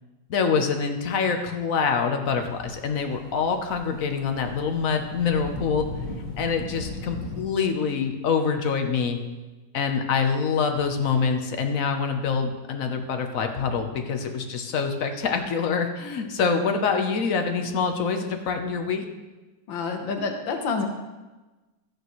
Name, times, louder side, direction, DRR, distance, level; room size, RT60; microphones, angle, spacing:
voice 1, 0.3-5.9 6.4-9.2 9.7-19.0, left 5 dB, 55° left, 5 dB, 1.1 m, -25 dB
sound 1, 2.4-7.4, left 2 dB, 80° right, 4.2 m, -38 dB
voice 2, 19.7-20.9, left 4 dB, 85° left, 4 dB, 1.9 m, -28 dB
13.0 x 9.3 x 3.1 m, 1.2 s
omnidirectional pair, 2.0 m